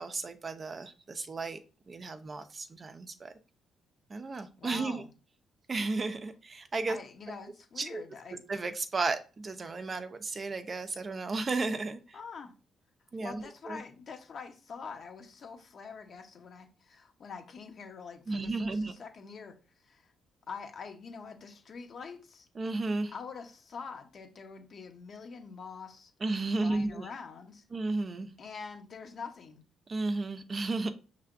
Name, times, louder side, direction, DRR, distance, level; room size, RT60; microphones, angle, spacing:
voice 1, 0.0-1.6 1.9-3.3 4.1-5.0 5.7-7.0 7.8-8.0 8.5-12.2 13.1-13.8 18.3-18.9 22.6-23.1 26.2-27.1 27.7-28.3 29.9-30.9, right 3 dB, 35° right, 0.5 m, -33 dB
voice 2, 4.4-5.1 6.9-8.4 12.1-12.5 13.2-20.1 20.5-22.5 23.1-26.1 26.6-27.7 28.4-29.6, left 5 dB, 55° left, 0.9 m, -45 dB
5.6 x 3.3 x 2.5 m
cardioid pair, 90°, 0 cm